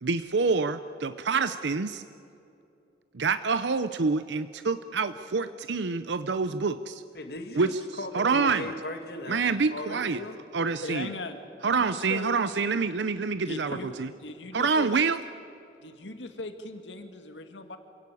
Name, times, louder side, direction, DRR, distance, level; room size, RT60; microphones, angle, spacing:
voice 1, 0.0-2.0 3.1-7.0 7.6-7.7 8.1-8.7 9.3-10.2 10.5-11.1 11.6-14.1 14.5-15.2, right 4 dB, 75° right, 12 dB, 0.6 m, -27 dB
voice 2, 7.1-9.4 9.7-10.4, left 1 dB, 55° left, 6 dB, 2.0 m, -38 dB
voice 3, 10.8-12.3 13.5-14.9 15.8-17.8, left 2 dB, 85° left, 7 dB, 2.1 m, -39 dB
27.0 x 17.5 x 8.4 m, 2.6 s
head